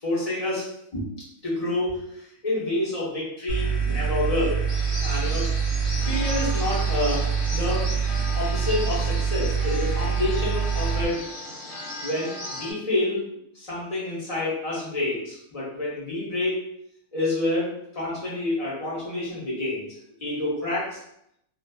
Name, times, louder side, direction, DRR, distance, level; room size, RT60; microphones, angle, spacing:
voice 1, 0.0-0.7 0.9-1.1 1.4-2.0 2.4-4.6 5.0-5.5 6.1-7.2 7.5-7.9 8.3-11.2 12.0-13.2 13.5-16.6 17.1-19.9 20.2-21.0, left 2 dB, 30° left, -7 dB, 0.9 m, -28 dB
sound 1, 3.5-11.0, right 6 dB, 75° left, 1.2 m, -25 dB
sound 2, 4.7-12.7, left 1 dB, 35° right, 0.5 m, -36 dB
2.5 x 2.5 x 2.2 m, 0.74 s
omnidirectional pair, 1.4 m